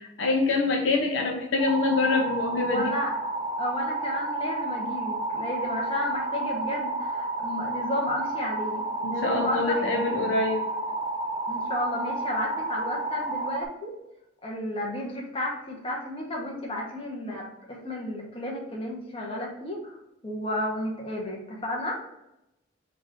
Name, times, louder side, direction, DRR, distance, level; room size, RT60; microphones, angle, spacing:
voice 1, 0.0-2.9 9.0-10.7, left 3 dB, 65° left, 2 dB, 0.5 m, -25 dB
sound 1, 1.6-13.7, right 2 dB, 25° right, 0.4 m, -31 dB
voice 2, 2.5-3.1 3.6-10.2 11.5-13.9 14.4-20.0 20.2-22.1, left 1 dB, 25° left, -1 dB, 0.9 m, -32 dB
4.0 x 2.5 x 4.7 m, 0.88 s
head